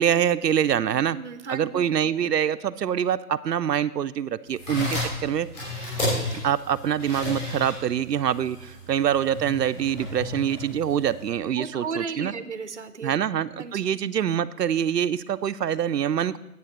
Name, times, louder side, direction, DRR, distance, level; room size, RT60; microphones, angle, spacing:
voice 1, 0.0-1.2 1.5-5.5 6.4-12.3 13.0-16.4, right 9 dB, 90° right, 10 dB, 0.6 m, -25 dB
voice 2, 1.1-1.8 11.6-13.1 13.5-13.9, right 5 dB, 45° right, 11 dB, 0.7 m, -34 dB
sound 1, 4.5-11.3, left 2 dB, 30° left, 5.2 m, -33 dB
9.4 x 8.2 x 6.5 m, 0.92 s
hypercardioid pair, 175°, 47 cm